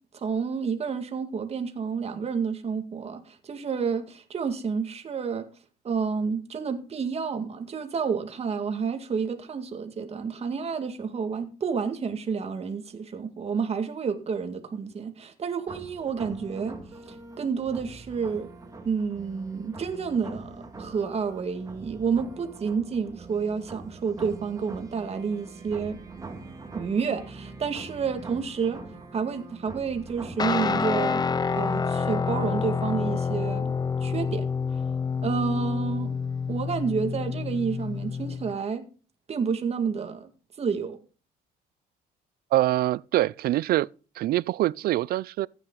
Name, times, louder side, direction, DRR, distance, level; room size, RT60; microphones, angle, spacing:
voice 1, 0.1-5.5 5.8-16.8 17.1-18.5 18.8-26.0 26.7-28.8 29.1-31.2 31.6-34.5 35.2-36.2 36.5-38.8 39.3-40.3 40.6-41.0, right 5 dB, 35° right, 2.2 m, -30 dB
sound 1, 15.7-31.7, right 3 dB, 20° right, 2.2 m, -43 dB
Guitar, 30.4-38.5, left 5 dB, 25° left, 0.6 m, -28 dB
voice 2, 42.5-43.9 44.2-45.5, right 15 dB, 65° right, 0.4 m, -24 dB
14.5 x 9.2 x 4.0 m
cardioid pair, 110°, 17 cm